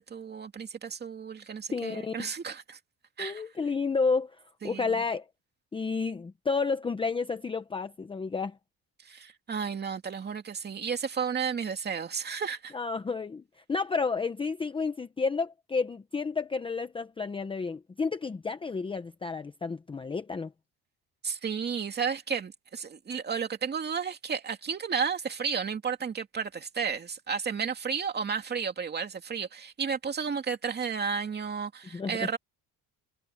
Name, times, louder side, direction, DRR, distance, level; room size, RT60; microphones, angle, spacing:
voice 1, 0.0-2.8 3.2-3.4 4.6-5.0 9.0-12.7 21.2-32.4, right 6 dB, 25° right, 2.5 m, -33 dB
voice 2, 1.7-2.3 3.2-4.4 4.6-5.2 5.7-8.6 12.7-13.4 13.7-20.5 31.9-32.3, left 4 dB, 15° left, 0.7 m, -31 dB
cardioid pair, 160°, 37 cm